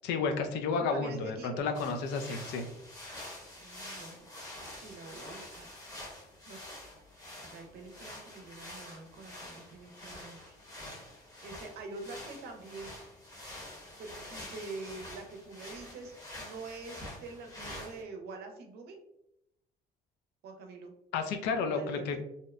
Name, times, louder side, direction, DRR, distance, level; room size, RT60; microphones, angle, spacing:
voice 1, 0.0-2.6 21.1-22.2, left 4 dB, 80° left, 6 dB, 0.4 m, -31 dB
voice 2, 0.7-1.7 3.6-4.3 4.7-5.7 6.5-6.6 7.4-10.6 11.4-12.9 14.0-19.0 20.4-20.9 21.7-22.2, right 3 dB, 70° right, 4 dB, 0.6 m, -45 dB
sound 1, 1.7-18.0, left 1 dB, 20° left, 0.8 m, -47 dB
2.8 x 2.0 x 2.3 m, 0.82 s
cardioid pair, 110°, 17 cm